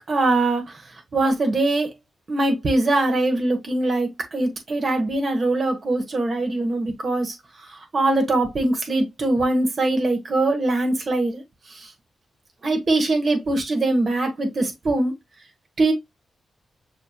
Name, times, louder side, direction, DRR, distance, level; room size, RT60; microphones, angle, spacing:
voice 1, 0.1-0.6 1.1-1.9 2.3-7.3 7.9-11.4 12.6-15.1 15.8-15.9, right 2 dB, 40° right, 1.3 m, -22 dB
6.4 x 3.0 x 2.3 m
wide cardioid pair, 110°, 0 cm